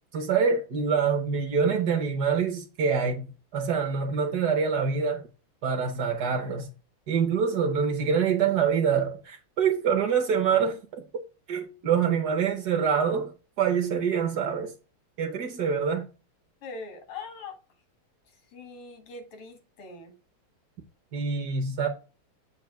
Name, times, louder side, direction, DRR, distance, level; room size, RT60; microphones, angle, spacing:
voice 1, 0.1-5.3 5.6-6.7 7.1-11.2 11.5-14.7 15.2-16.1 21.1-21.9, right 6 dB, 60° right, 1.2 m, -26 dB
voice 2, 16.6-17.6 18.3-20.1, left 4 dB, 90° left, 2.5 m, -42 dB
7.8 x 2.7 x 5.7 m
omnidirectional pair, 2.3 m